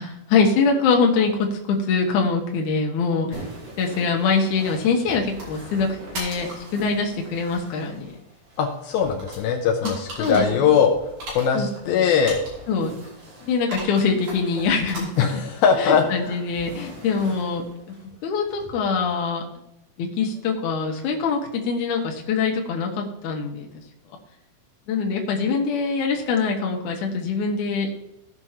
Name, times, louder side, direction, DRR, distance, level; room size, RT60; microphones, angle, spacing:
voice 1, 0.0-3.4 3.8-8.2 9.8-9.9 10.2-10.8 11.5-12.1 12.7-12.9 13.4-15.4 15.8-17.6 18.2-19.4 20.0-23.7 24.9-28.0, left 5 dB, 65° left, 1 dB, 2.4 m, -24 dB
sound 1, 3.3-19.1, right 1 dB, 60° right, 4.1 m, -40 dB
voice 2, 8.6-10.9 11.3-12.4 15.2-16.4, left 7 dB, 80° left, 2 dB, 2.6 m, -20 dB
17.0 x 6.2 x 2.9 m, 0.87 s
omnidirectional pair, 4.4 m